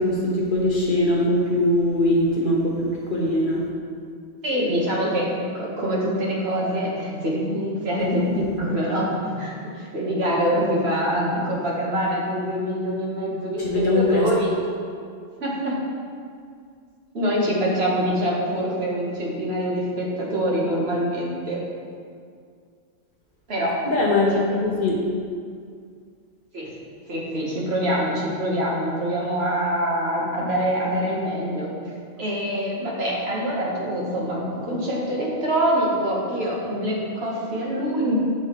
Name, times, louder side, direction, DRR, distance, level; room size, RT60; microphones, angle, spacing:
voice 1, 0.0-3.6 13.6-14.3 23.9-24.3 24.6-25.0, left 1 dB, 45° left, -3 dB, 0.9 m, -21 dB
voice 2, 4.4-14.6 15.4-15.8 17.1-21.6 23.5-23.8 24.3-24.4 26.5-26.7 27.1-31.7 32.2-38.1, equal, 55° right, -4 dB, 1.4 m, -25 dB
6.4 x 5.8 x 3.0 m, 2.2 s
omnidirectional pair, 1.4 m